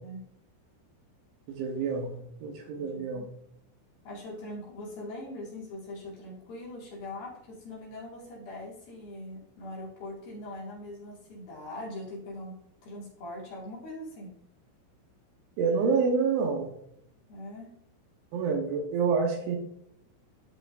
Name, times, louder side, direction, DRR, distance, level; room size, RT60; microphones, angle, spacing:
voice 1, 1.5-2.1 2.4-3.2 15.6-16.7 18.3-19.6, right 5 dB, 75° right, 2 dB, 3.3 m, -27 dB
voice 2, 2.7-3.3 4.0-14.4 17.3-17.7, left 1 dB, 55° left, -5 dB, 3.5 m, -42 dB
13.0 x 5.9 x 2.6 m, 0.71 s
omnidirectional pair, 5.9 m